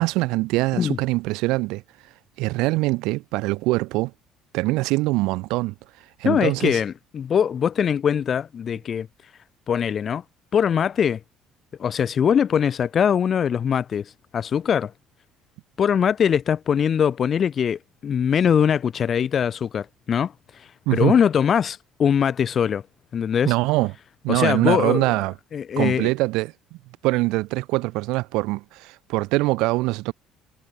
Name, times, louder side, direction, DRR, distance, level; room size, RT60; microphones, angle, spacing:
voice 1, 0.0-1.8 2.4-4.1 4.5-5.7 6.2-6.8 20.9-21.2 23.4-23.9 24.2-25.3 25.8-26.5 27.0-30.1, right 21 dB, 80° right, 2.1 m, -23 dB
voice 2, 6.2-9.1 9.7-10.2 10.5-11.2 11.8-14.9 15.8-22.8 23.1-23.5 24.3-25.1 25.5-26.1, left 8 dB, 35° left, 4.7 m, -22 dB
cardioid pair, 150°, 0 cm